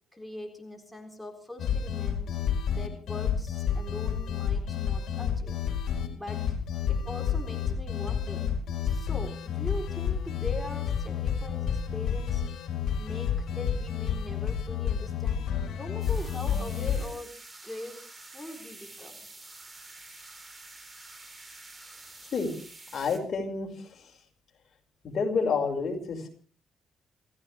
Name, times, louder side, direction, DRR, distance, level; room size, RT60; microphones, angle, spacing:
voice 1, 0.1-2.3 2.7-5.6 6.2-6.6 6.9-8.5 8.8-12.5 13.0-17.4 17.6-18.0 18.3-19.2, left 1 dB, 5° left, 2 dB, 3.9 m, -41 dB
sound 1, 1.6-17.1, left 8 dB, 70° left, 4.5 m, -30 dB
sound 2, 16.0-23.2, right 2 dB, 20° right, 4.0 m, -48 dB
voice 2, 22.9-24.2 25.0-26.3, left 5 dB, 50° left, 1 dB, 5.8 m, -29 dB
28.5 x 14.5 x 3.5 m, 0.41 s
cardioid pair, 90°, 0 cm